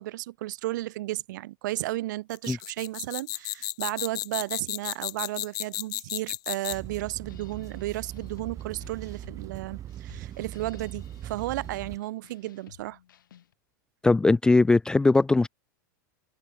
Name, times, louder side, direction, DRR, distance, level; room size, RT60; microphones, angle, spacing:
voice 1, 0.0-13.0, right 16 dB, 70° right, 2.2 m, -33 dB
sound 1, 2.3-7.0, left 18 dB, 40° left, 0.8 m, -33 dB
sound 2, 6.7-12.0, right 11 dB, 30° right, 1.3 m, -40 dB
sound 3, 7.3-13.5, left 10 dB, 85° left, 7.6 m, -54 dB
voice 2, 14.0-15.5, left 3 dB, 5° left, 0.4 m, -20 dB
hypercardioid pair, 120°, 10 cm